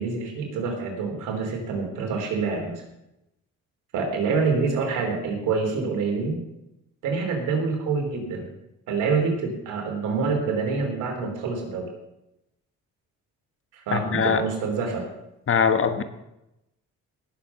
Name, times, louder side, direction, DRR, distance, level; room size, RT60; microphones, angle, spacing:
voice 1, 0.0-2.8 3.9-6.4 7.0-8.5 8.9-11.9 13.7-15.1, right 4 dB, 85° right, 2 dB, 3.6 m, -26 dB
voice 2, 13.9-14.4 15.5-16.0, left 6 dB, 45° left, 9 dB, 1.3 m, -22 dB
17.5 x 7.5 x 5.8 m, 0.89 s
cardioid pair, 90°, 30 cm